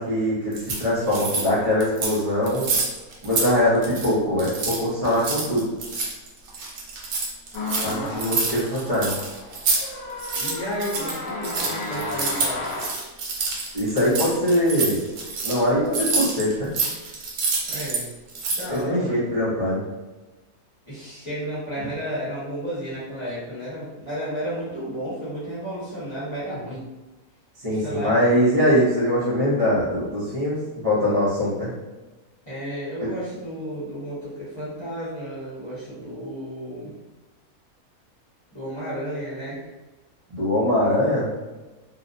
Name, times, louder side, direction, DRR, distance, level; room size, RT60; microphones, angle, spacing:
voice 1, 0.0-2.7 3.2-5.7 7.8-9.1 13.7-15.0 15.4-16.7 18.7-19.9 21.8-21.9 27.6-31.7 40.3-41.3, left 1 dB, 35° right, -10 dB, 0.6 m, -22 dB
sound 1, 0.5-1.5 1.8-2.2 2.5-3.5 3.7-4.1 4.4-9.8 10.1-18.0 18.3-18.8, right 4 dB, 90° right, 1.1 m, -27 dB
sound 2, 7.5-12.9, left 2 dB, 65° left, 0.8 m, -33 dB
voice 2, 7.9-8.4 10.3-12.7 17.7-18.1 18.5-19.2 20.9-26.8 27.6-28.2 32.4-36.9 38.5-39.6, right 1 dB, 20° left, -11 dB, 0.9 m, -32 dB
2.8 x 2.0 x 2.5 m, 1.1 s
omnidirectional pair, 1.5 m